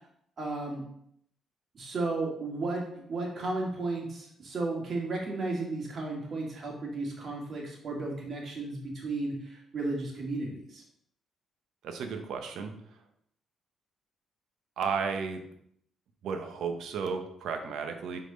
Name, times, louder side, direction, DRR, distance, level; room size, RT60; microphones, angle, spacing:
voice 1, 0.4-0.8 1.7-2.8 3.1-10.8, right 2 dB, 50° right, -1 dB, 2.2 m, -34 dB
voice 2, 11.8-13.0 14.8-15.4 16.2-18.2, right 5 dB, 75° right, 6 dB, 0.9 m, -33 dB
5.1 x 4.1 x 5.3 m, 0.70 s
cardioid pair, 90°, 0 cm